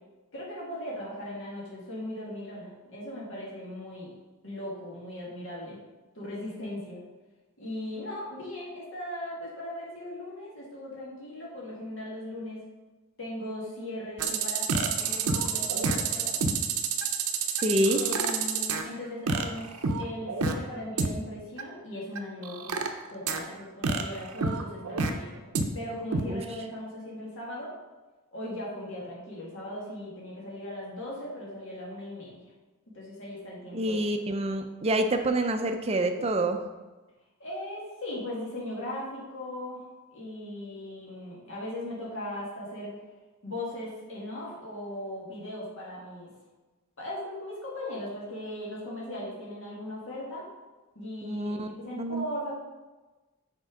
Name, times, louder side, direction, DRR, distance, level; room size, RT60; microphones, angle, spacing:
voice 1, 0.3-4.1 4.4-5.8 6.2-7.0 7.6-12.6 13.2-16.3 17.9-25.4 25.7-27.7 28.3-32.4 32.9-34.0 37.4-39.8 40.1-42.9 43.4-46.3 47.0-50.5 51.0-52.5, left 1 dB, 60° left, -5 dB, 2.0 m, -38 dB
sound 1, 14.2-18.8 19.3-20.5 21.0-21.1 21.6-21.7 22.1-23.4 23.8-25.1 25.5-25.6 26.1-26.2, right 5 dB, 80° right, 0.7 m, -28 dB
voice 2, 17.6-18.0 26.3-26.4 33.7-36.6 51.2-52.2, right 1 dB, 25° right, 6 dB, 0.5 m, -27 dB
6.6 x 4.5 x 4.9 m, 1.2 s
head